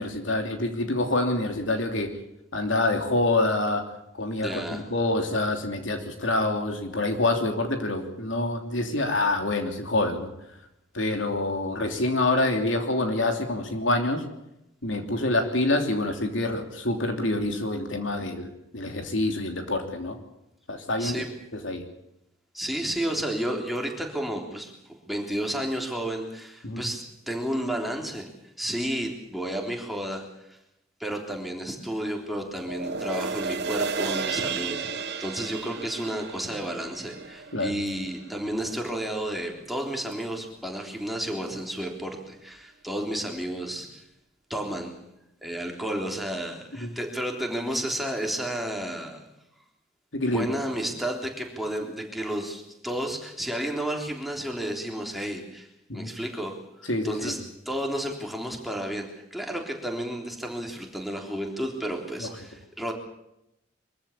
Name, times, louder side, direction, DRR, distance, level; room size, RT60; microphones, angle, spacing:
voice 1, 0.0-2.2 2.5-3.8 4.2-10.3 10.9-14.2 14.8-20.2 20.7-21.2 21.5-21.8 26.6-26.9 37.5-37.7 46.8-46.9 50.1-50.5 55.9-56.1 56.9-57.3 62.2-62.3, left 2 dB, 70° left, 5 dB, 3.1 m, -26 dB
voice 2, 4.4-4.8 21.0-21.3 22.5-28.3 28.6-30.6 31.0-44.0 44.5-45.0 45.4-49.2 50.3-55.7 55.9-57.4 57.7-62.9, right 1 dB, ahead, 1 dB, 3.5 m, -32 dB
sound 1, 32.6-39.2 39.6-39.7, right 5 dB, 60° right, 1.8 m, -33 dB
24.0 x 15.0 x 8.6 m, 0.85 s
head